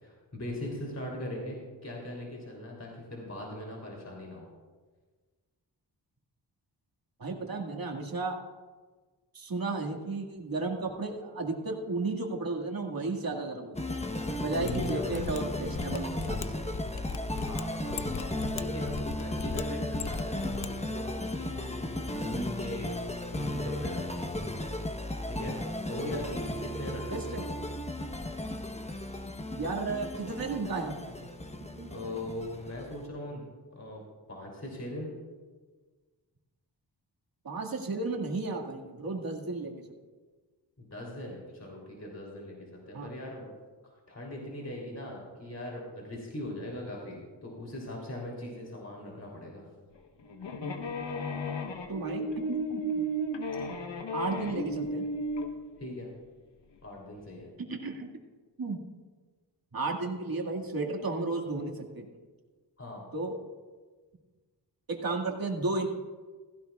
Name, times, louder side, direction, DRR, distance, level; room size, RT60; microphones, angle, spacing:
voice 1, 0.0-4.5 14.6-15.2 17.3-22.9 23.3-24.4 25.3-27.5 31.9-33.5 33.7-34.0 34.3-35.1 40.8-43.5 43.8-49.6 55.8-56.1 56.8-57.5 62.8-63.1, left 1 dB, 35° left, -2 dB, 3.1 m, -40 dB
voice 2, 7.2-8.4 9.3-13.8 14.4-16.4 27.1-27.4 29.5-31.3 31.7-31.9 37.4-39.8 42.9-43.1 51.9-53.0 54.1-55.0 57.6-58.1 58.6-58.8 59.7-62.1 63.1-63.4 64.9-65.9, right 3 dB, 55° right, 0 dB, 2.0 m, -33 dB
sound 1, 13.7-33.1, left 1 dB, 15° left, 1.0 m, -35 dB
Mechanisms, 14.6-20.7 20.9-21.0, left 7 dB, 60° left, 0.6 m, -40 dB
sound 2, 50.0-55.5, equal, 80° left, 1.2 m, -34 dB
16.0 x 16.0 x 2.4 m, 1.4 s
cardioid pair, 65°, 43 cm